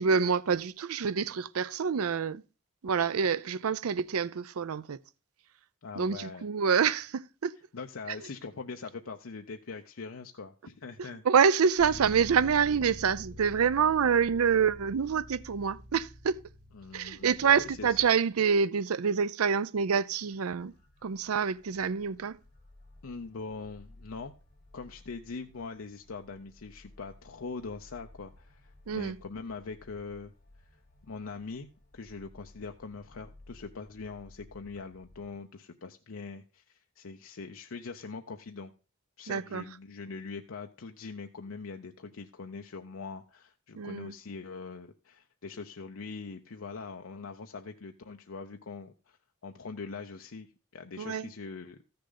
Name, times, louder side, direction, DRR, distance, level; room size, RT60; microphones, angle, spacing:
voice 1, 0.0-2.4 2.8-5.0 6.0-7.5 8.2-8.3 11.2-16.4 16.9-20.7 21.0-22.4 28.9-29.2 39.3-39.6 43.8-44.1 51.0-51.3, right 6 dB, 85° right, 0.5 m, -27 dB
voice 2, 5.8-6.5 7.7-11.2 16.7-17.9 23.0-24.3 24.7-30.3 31.0-38.7 39.2-49.2 49.4-51.8, left 4 dB, 70° left, 0.7 m, -42 dB
Bass guitar, 11.8-18.0, left 1 dB, 35° right, 5.6 m, -47 dB
sound 1, 19.8-35.4, left 1 dB, 35° left, 2.4 m, -57 dB
14.0 x 6.7 x 3.9 m
head